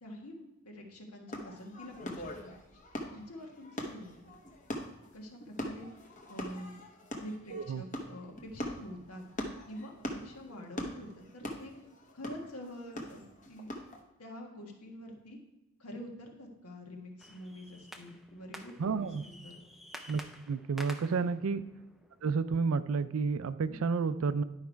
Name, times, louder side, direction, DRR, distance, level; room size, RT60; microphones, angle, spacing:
voice 1, 0.0-2.5 3.1-4.3 5.1-5.9 6.3-6.8 7.1-9.2 9.7-11.7 12.1-13.2 13.5-13.7 14.2-15.4 15.8-19.6 21.0-21.3 23.6-23.8, equal, 85° left, 1 dB, 1.6 m, -46 dB
sound 1, 1.3-14.0, left 1 dB, 35° left, 0.9 m, -42 dB
voice 2, 7.5-7.8 18.8-19.2 20.1-20.2 20.5-21.6 22.2-24.4, right 5 dB, 70° right, 14 dB, 0.4 m, -30 dB
sound 2, 17.2-22.7, equal, ahead, 0.4 m, -51 dB
10.5 x 4.8 x 4.5 m, 1.0 s
head